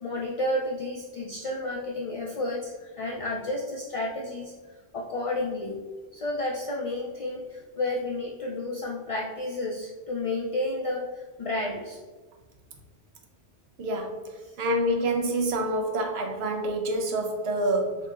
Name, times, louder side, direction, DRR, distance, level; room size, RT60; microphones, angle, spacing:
voice 1, 0.0-4.5 4.9-5.8 6.1-12.0 14.4-14.6, left 2 dB, 65° left, -3 dB, 0.3 m, -31 dB
voice 2, 13.8-14.2 14.6-18.0, right 1 dB, 75° right, 2 dB, 0.9 m, -27 dB
4.9 x 2.8 x 2.4 m, 1.3 s
omnidirectional pair, 1.1 m